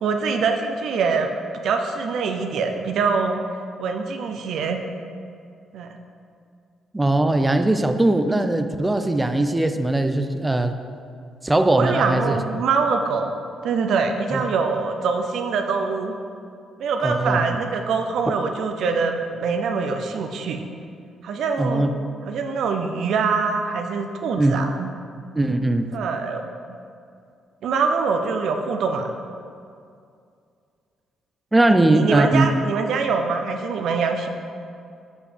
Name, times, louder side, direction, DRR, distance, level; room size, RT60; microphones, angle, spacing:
voice 1, 0.0-1.3 1.6-3.4 3.8-4.8 5.7-5.9 11.8-13.3 13.6-16.1 16.8-20.7 21.2-21.9 22.2-24.9 25.9-26.4 26.7-26.8 27.6-29.1 31.7-34.3, right 5 dB, 75° right, 5 dB, 0.5 m, -24 dB
voice 2, 6.9-10.7 11.4-12.4 14.3-14.4 17.0-17.4 21.6-21.9 24.4-24.6 25.4-25.9 31.5-32.5, right 2 dB, 15° right, 7 dB, 0.4 m, -20 dB
7.6 x 4.9 x 3.3 m, 2.4 s
cardioid pair, 90°, 0 cm